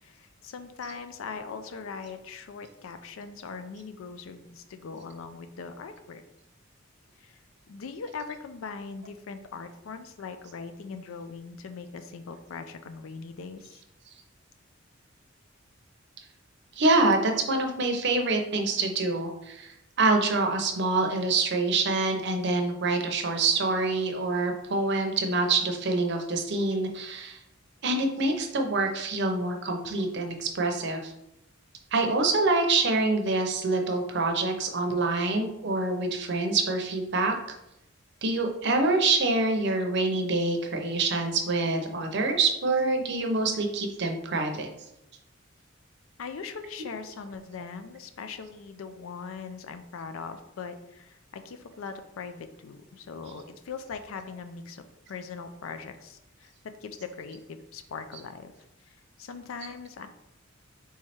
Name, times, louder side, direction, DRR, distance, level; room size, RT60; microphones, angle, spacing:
voice 1, 0.0-6.2 7.2-7.4 7.7-13.8 46.2-58.5 58.9-60.1, left 5 dB, 75° left, 9 dB, 0.4 m, -40 dB
voice 2, 16.8-27.4 27.8-31.1 31.9-37.3 38.2-44.7, right 3 dB, 55° right, 4 dB, 0.7 m, -26 dB
3.5 x 3.2 x 4.2 m, 0.84 s
head